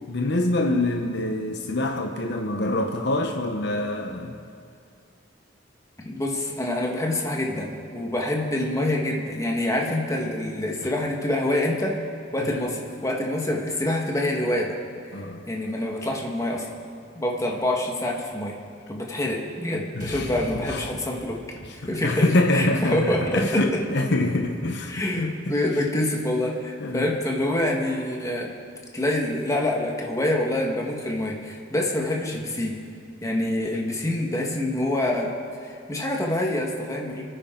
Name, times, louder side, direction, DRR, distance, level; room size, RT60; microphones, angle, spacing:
voice 1, 0.1-4.4 10.8-10.9 12.4-12.6 15.1-15.4 19.9-20.9 21.6-25.3 26.8-27.1, left 2 dB, 65° left, 3 dB, 1.0 m, -25 dB
voice 2, 6.0-12.0 12.3-14.8 15.5-16.7 17.2-18.6 18.9-21.4 21.8-22.3 22.5-23.8 24.9-28.5 28.9-32.8 33.2-35.3 35.6-37.2, left 1 dB, 15° left, -1 dB, 1.7 m, -26 dB
sound 1, 20.0-24.2, right 1 dB, 45° right, 1.4 m, -43 dB
28.5 x 9.9 x 3.9 m, 2.3 s
head